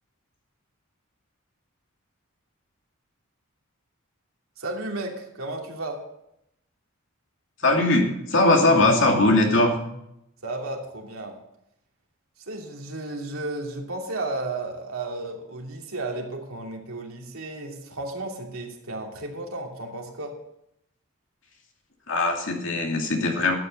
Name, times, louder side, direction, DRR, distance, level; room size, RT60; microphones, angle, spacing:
voice 1, 4.6-6.0 10.4-11.4 12.4-20.4, right 2 dB, 85° right, 0 dB, 2.9 m, -33 dB
voice 2, 7.6-9.8 22.1-23.6, left 2 dB, 60° left, 1 dB, 2.7 m, -20 dB
12.0 x 8.9 x 6.6 m, 0.80 s
head